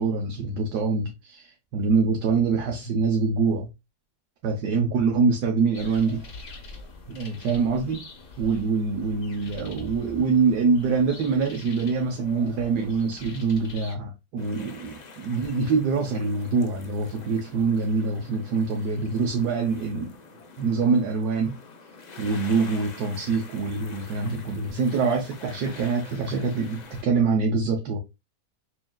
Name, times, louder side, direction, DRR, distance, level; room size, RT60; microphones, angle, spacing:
voice 1, 0.0-3.7 4.4-6.2 7.1-8.0 8.4-20.1 20.6-21.5 22.2-28.0, right 4 dB, 85° right, 1.4 m, -25 dB
sound 1, 5.7-14.0, left 3 dB, 55° left, 1.2 m, -45 dB
sound 2, 14.4-27.0, left 4 dB, 75° left, 0.4 m, -46 dB
6.0 x 2.6 x 2.2 m
omnidirectional pair, 1.7 m